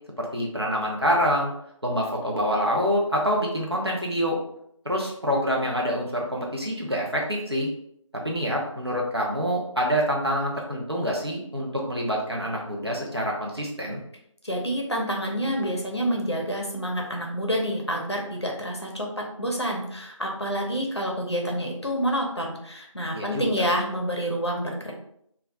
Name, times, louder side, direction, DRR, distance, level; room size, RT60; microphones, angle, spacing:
voice 1, 0.2-1.5 1.8-4.4 4.8-7.7 8.2-14.0 23.1-23.6, equal, 50° right, -2 dB, 0.6 m, -26 dB
voice 2, 14.4-19.1 19.4-24.9, equal, 55° left, 0 dB, 0.6 m, -28 dB
2.3 x 2.0 x 3.4 m, 0.72 s
figure-of-eight pair, 175°, 17 cm